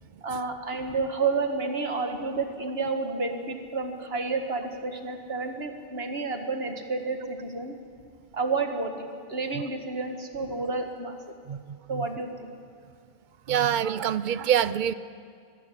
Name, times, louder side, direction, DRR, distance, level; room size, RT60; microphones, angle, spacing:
voice 1, 0.2-7.8 8.3-11.1 11.9-12.5, right 3 dB, 75° right, 5 dB, 2.0 m, -30 dB
voice 2, 13.5-14.9, right 9 dB, 55° right, 16 dB, 0.7 m, -25 dB
24.0 x 12.0 x 10.0 m, 2.2 s
omnidirectional pair, 1.0 m